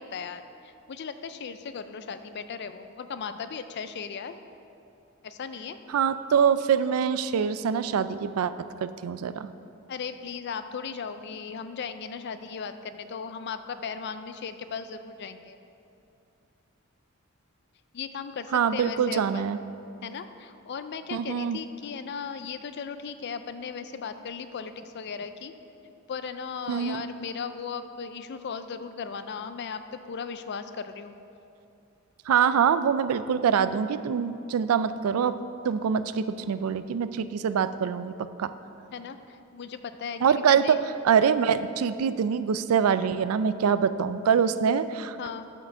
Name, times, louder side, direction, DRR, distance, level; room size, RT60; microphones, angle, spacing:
voice 1, 0.0-4.4 5.2-5.8 9.9-15.6 17.9-19.5 20.0-25.6 26.1-31.1 38.9-40.8 45.2-45.5, left 6 dB, 50° left, 10 dB, 0.4 m, -37 dB
voice 2, 5.9-8.5 8.8-9.5 18.5-19.6 21.1-21.6 26.7-27.0 32.3-35.3 35.6-38.1 38.4-38.5 40.2-40.8 41.0-45.2, right 7 dB, 90° right, 13 dB, 0.4 m, -24 dB
7.3 x 5.9 x 6.6 m, 2.7 s
head